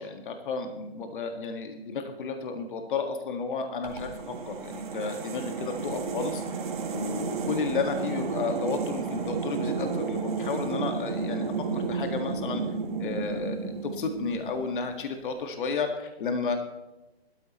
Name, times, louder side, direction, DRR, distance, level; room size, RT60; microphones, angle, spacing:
voice 1, 0.0-12.6 13.0-16.6, left 4 dB, 55° left, 5 dB, 1.9 m, -32 dB
sound 1, 3.8-14.9, right 5 dB, 50° right, 2.1 m, -32 dB
17.5 x 13.0 x 3.1 m, 1.0 s
hypercardioid pair, 145°, 32 cm